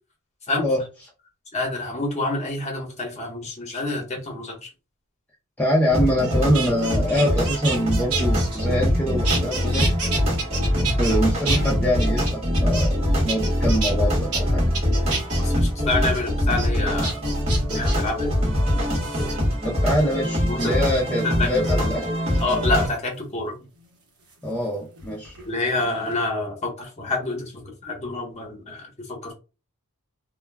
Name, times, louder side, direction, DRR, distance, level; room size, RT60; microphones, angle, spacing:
voice 1, 1.5-4.7 15.4-17.2 17.7-18.4 20.5-20.8 21.2-21.9 22.4-23.6 25.5-29.3, left 2 dB, 30° left, 1 dB, 0.9 m, -27 dB
voice 2, 5.6-9.9 10.8-14.6 19.6-22.0 24.4-25.3, equal, 5° left, -4 dB, 0.5 m, -24 dB
sound 1, 5.9-22.9, equal, 30° right, 1.1 m, -23 dB
sound 2, 6.2-9.0 9.2-11.2 11.4-13.0 13.3-13.9 14.3-14.4 14.7-15.4 15.9-16.2 16.6-16.7 17.0-18.1 18.9-19.3 20.6-20.9 21.5-21.7 22.3-22.9 24.3-25.5 25.8-26.2, right 4 dB, 80° right, 0.9 m, -30 dB
2.2 x 2.2 x 3.3 m, 0.31 s
head